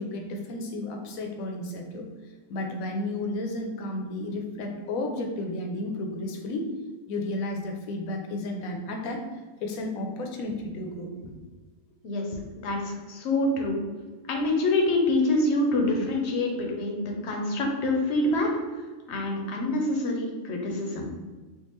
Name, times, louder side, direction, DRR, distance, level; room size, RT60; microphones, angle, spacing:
voice 1, 0.0-2.1 2.5-6.7 7.1-9.2 9.6-11.3 12.3-12.4, left 2 dB, 80° left, 3 dB, 1.0 m, -32 dB
voice 2, 12.6-13.8 14.3-18.5 19.1-21.1, left 2 dB, 60° left, 1 dB, 0.9 m, -26 dB
3.6 x 2.4 x 3.0 m, 1.3 s
omnidirectional pair, 1.5 m